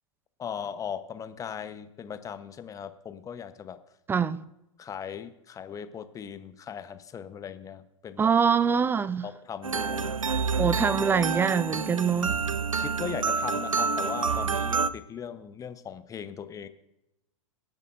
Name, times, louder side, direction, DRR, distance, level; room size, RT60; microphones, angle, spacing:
voice 1, 0.4-3.8 4.8-8.3 9.2-10.2 12.7-16.7, left 7 dB, 20° left, 0.9 m, -38 dB
voice 2, 4.1-4.4 8.2-9.3 10.6-12.4, right 6 dB, 15° right, 0.4 m, -24 dB
sound 1, 9.6-14.9, right 5 dB, 90° right, 0.6 m, -28 dB
21.0 x 10.5 x 2.6 m
figure-of-eight pair, 100°, 17 cm